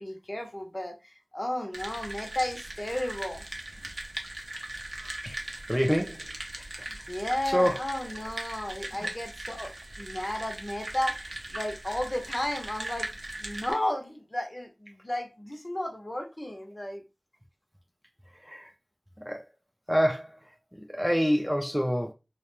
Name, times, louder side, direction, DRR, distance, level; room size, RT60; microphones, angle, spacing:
voice 1, 0.0-3.4 6.8-9.7 10.0-13.1 13.4-17.0, left 1 dB, 40° left, 0.6 m, -33 dB
sound 1, 1.7-13.7, right 1 dB, 80° right, 0.5 m, -39 dB
voice 2, 5.7-6.2 7.5-7.8 18.5-18.7 19.3-19.4 19.9-20.3 20.9-22.1, equal, 5° right, 0.4 m, -26 dB
2.3 x 2.1 x 2.9 m
wide cardioid pair, 40°, 0 cm